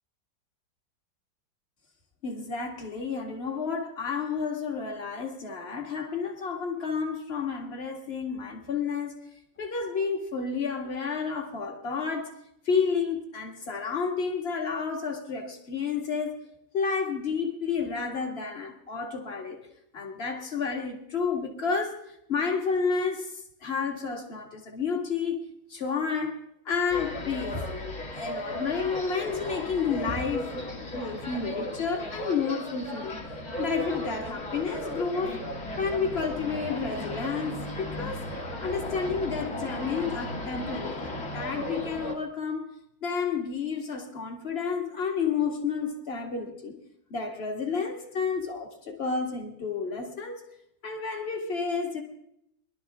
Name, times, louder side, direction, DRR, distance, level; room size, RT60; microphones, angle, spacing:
voice 1, 2.2-9.2 9.6-12.3 12.7-16.4 16.7-19.6 19.9-25.4 25.7-26.4 26.7-27.7 28.1-33.2 33.6-35.4 35.8-38.3 38.6-42.6 43.0-46.8 47.1-50.4 50.8-52.0, left 5 dB, 35° left, 2.2 m, -31 dB
sound 1, 26.9-42.1, left 1 dB, 50° left, 2.7 m, -36 dB
22.5 x 12.0 x 3.7 m
omnidirectional pair, 2.0 m